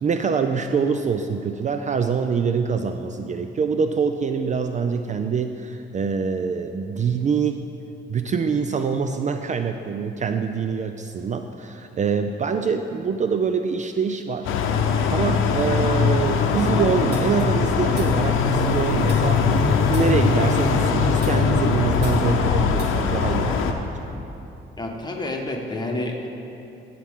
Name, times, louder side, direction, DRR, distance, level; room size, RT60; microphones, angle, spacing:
voice 1, 0.0-7.6 8.1-14.5 15.1-19.4 19.9-23.9, right 6 dB, 35° right, 7 dB, 0.4 m, -25 dB
sound 1, 14.4-23.7, left 5 dB, 85° left, 0.7 m, -21 dB
sound 2, 17.1-18.7 19.1-20.7 21.1-22.8, right 2 dB, 55° right, 1.9 m, -44 dB
voice 2, 24.8-26.3, left 2 dB, 20° left, 1 dB, 1.3 m, -29 dB
16.0 x 5.9 x 3.7 m, 2.9 s
cardioid pair, 90°, 20 cm